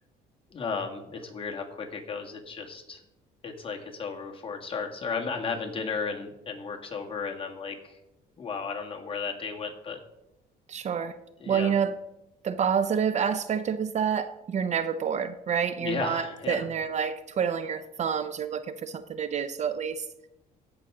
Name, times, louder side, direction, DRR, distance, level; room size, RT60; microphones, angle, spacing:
voice 1, 0.5-3.0 3.4-8.0 8.4-10.0 11.4-11.7 15.8-16.6, left 5 dB, 30° left, 1 dB, 2.0 m, -34 dB
voice 2, 10.7-11.2 11.5-12.0 12.4-20.1, right 7 dB, 45° right, 12 dB, 0.6 m, -28 dB
16.0 x 6.4 x 3.8 m, 0.88 s
cardioid pair, 110°, 17 cm